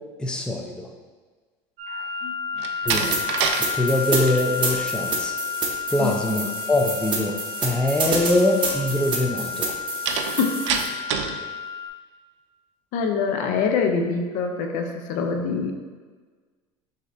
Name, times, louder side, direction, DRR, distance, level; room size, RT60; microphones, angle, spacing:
voice 1, 0.2-0.9 2.9-3.1 3.7-5.4 5.9-9.7, left 1 dB, 5° left, 1 dB, 0.5 m, -23 dB
sound 1, 1.8-11.9, left 6 dB, 60° right, 0.8 m, -31 dB
voice 2, 1.9-2.3 2.6-2.9 6.0-6.2 10.1-10.8 12.9-15.7, left 5 dB, 60° left, 4 dB, 0.6 m, -25 dB
Slam, 2.5-3.6 4.0-4.4 10.1-11.4, right 6 dB, 85° right, 0.4 m, -26 dB
sound 2, 2.9-10.9, right 4 dB, 35° right, 0.9 m, -29 dB
6.1 x 2.8 x 2.5 m, 1.4 s
supercardioid pair, 90°, 14 cm